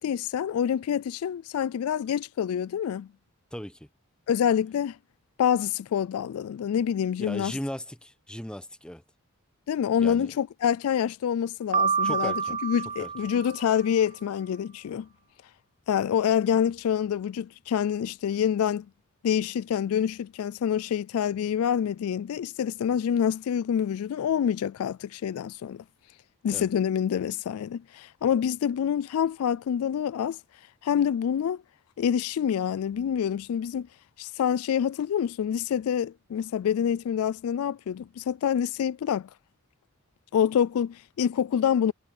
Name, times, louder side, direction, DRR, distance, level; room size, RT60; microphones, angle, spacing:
voice 1, 0.0-3.1 4.3-5.0 5.4-7.5 9.7-12.3 12.6-15.1 15.9-18.9 19.2-25.8 26.4-30.4 30.8-31.6 32.0-33.9 34.2-39.3 40.3-41.9, left 8 dB, 80° left, 0.3 m, -26 dB
voice 2, 3.5-3.9 7.2-9.0 10.0-10.3 12.0-12.6 13.0-13.1 26.5-26.7, equal, 5° left, 0.9 m, -37 dB
Piano, 11.7-13.9, right 6 dB, 30° right, 0.4 m, -28 dB
head